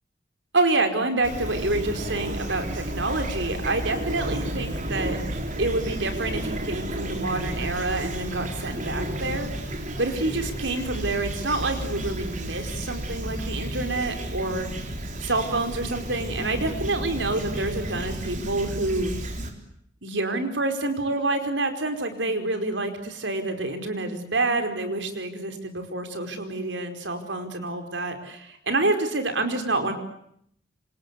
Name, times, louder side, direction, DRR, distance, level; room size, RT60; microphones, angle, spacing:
voice 1, 0.5-5.2 5.6-14.7 15.2-19.1 20.0-29.9, right 2 dB, 80° right, 6 dB, 4.9 m, -27 dB
Fowl / Chirp tweet, 1.2-19.5, right 1 dB, 45° right, 4.1 m, -32 dB
27.0 x 26.5 x 8.3 m, 0.71 s
head